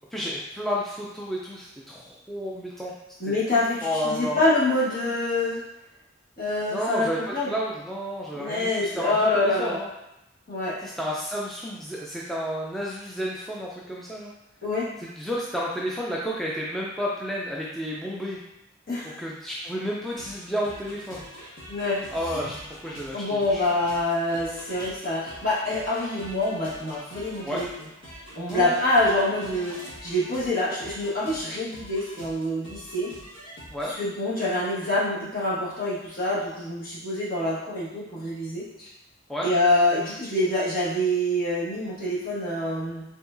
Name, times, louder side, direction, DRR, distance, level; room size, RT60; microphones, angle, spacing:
voice 1, 0.1-2.9 3.8-4.4 6.7-9.9 10.8-14.3 15.0-18.4 19.2-21.3 22.1-22.5 22.8-23.2 23.5-23.6 27.4-27.7 28.5-28.7 33.7-33.9 39.3-39.5, equal, ahead, -5 dB, 0.4 m, -31 dB
voice 2, 3.2-5.6 6.4-7.5 8.3-9.8 10.5-10.9 14.6-14.9 18.9-19.2 21.7-22.0 23.1-27.7 28.3-33.1 33.9-38.9 39.4-43.0, left 1 dB, 50° left, -8 dB, 1.6 m, -26 dB
sound 1, 20.1-33.9, equal, 80° left, 1.6 m, -44 dB
4.9 x 3.7 x 2.6 m, 0.87 s
head